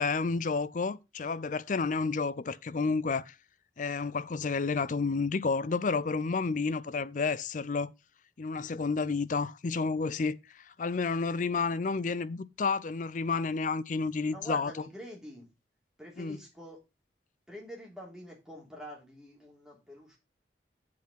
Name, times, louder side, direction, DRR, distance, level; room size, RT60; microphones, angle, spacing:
voice 1, 0.0-3.3 3.8-7.9 8.4-10.4 10.8-14.7 16.2-16.4, left 4 dB, 45° left, 0.5 m, -30 dB
voice 2, 14.3-15.5 16.0-16.8 17.5-20.2, equal, 5° right, 3.3 m, -46 dB
7.7 x 5.7 x 5.7 m
head